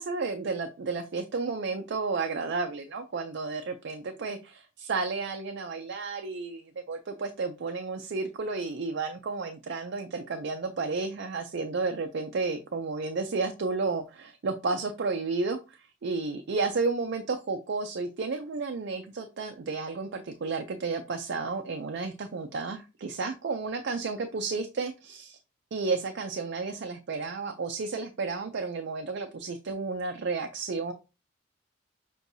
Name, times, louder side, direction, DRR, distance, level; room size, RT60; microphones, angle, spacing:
voice 1, 0.0-25.4 25.7-30.9, right 4 dB, 60° right, 5 dB, 0.5 m, -32 dB
6.2 x 2.6 x 2.6 m, 0.29 s
head